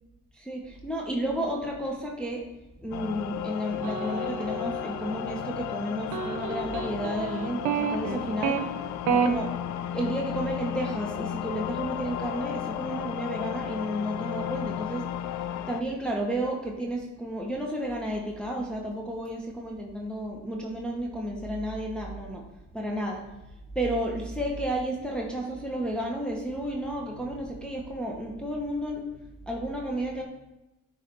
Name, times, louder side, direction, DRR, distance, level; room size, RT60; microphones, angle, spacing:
voice 1, 0.3-2.5 2.8-8.6 9.1-9.5 9.9-15.1 15.7-22.5 22.7-23.3 23.7-29.1 29.5-30.2, right 1 dB, 5° left, -1 dB, 0.9 m, -32 dB
sound 1, 2.9-15.8, left 11 dB, 65° left, 0.4 m, -34 dB
sound 2, 3.8-5.4 6.1-8.6 9.1-9.3, right 6 dB, 80° right, 0.8 m, -30 dB
9.2 x 3.3 x 4.5 m, 0.99 s
cardioid pair, 90°, 30 cm